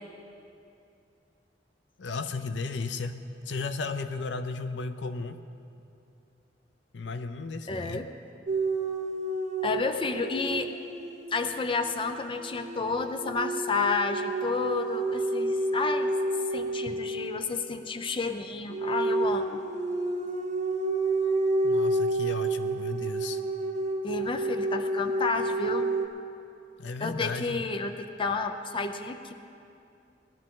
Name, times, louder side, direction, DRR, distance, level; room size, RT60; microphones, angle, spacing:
voice 1, 2.0-3.2 3.5-5.4 6.9-8.1 21.6-23.4 26.8-27.6, left 4 dB, 75° left, 10 dB, 0.5 m, -34 dB
voice 2, 7.7-8.1 9.6-10.7 11.3-19.6 24.0-26.0 27.0-29.3, left 4 dB, 30° left, 7 dB, 0.5 m, -31 dB
sound 1, 8.5-17.5 18.7-26.1, right 2 dB, 40° right, 0.9 m, -30 dB
19.0 x 11.5 x 3.8 m, 2.6 s
head